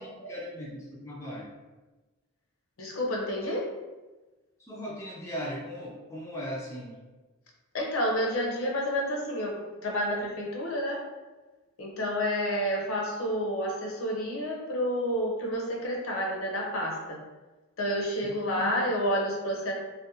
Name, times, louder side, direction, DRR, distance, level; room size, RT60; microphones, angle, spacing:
voice 1, 0.0-1.5 4.6-7.0 18.2-18.3, equal, 15° left, -5 dB, 0.3 m, -38 dB
voice 2, 2.8-3.7 7.7-11.1 11.8-17.2 17.8-19.7, equal, 70° left, -1 dB, 0.6 m, -29 dB
2.4 x 2.2 x 2.7 m, 1.2 s
head